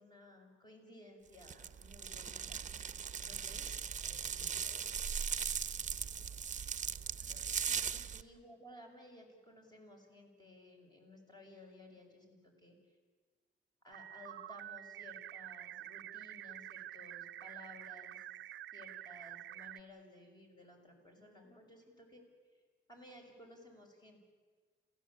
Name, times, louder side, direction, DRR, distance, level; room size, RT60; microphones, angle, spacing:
voice 1, 0.0-2.7 3.2-3.7 6.8-6.9 7.6-13.0 13.8-18.2 18.7-22.2 22.5-22.6 22.9-24.2, left 1 dB, 20° left, 2 dB, 6.8 m, -57 dB
sound 1, 1.4-8.2, right 7 dB, 40° right, 0.9 m, -39 dB
voice 2, 3.2-5.3 6.0-6.4 7.2-7.5 7.8-7.9, left 1 dB, 55° left, 2 dB, 7.3 m, -62 dB
sound 2, 13.9-19.8, right 13 dB, 70° right, 0.7 m, -48 dB
27.5 x 16.5 x 8.8 m, 1.5 s
cardioid pair, 90°, 20 cm